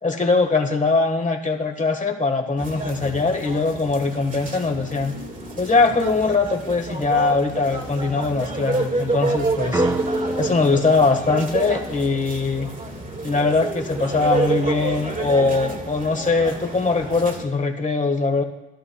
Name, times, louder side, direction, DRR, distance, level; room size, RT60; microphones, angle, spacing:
voice 1, 0.0-5.1 5.6-9.8 10.4-12.7 13.2-18.4, left 3 dB, 25° left, 4 dB, 1.6 m, -21 dB
sound 1, 2.6-17.4, right 2 dB, 25° right, 1.9 m, -29 dB
sound 2, 9.7-12.6, right 1 dB, 10° right, 0.9 m, -28 dB
15.5 x 12.5 x 2.4 m, 0.96 s
cardioid pair, 90°, 30 cm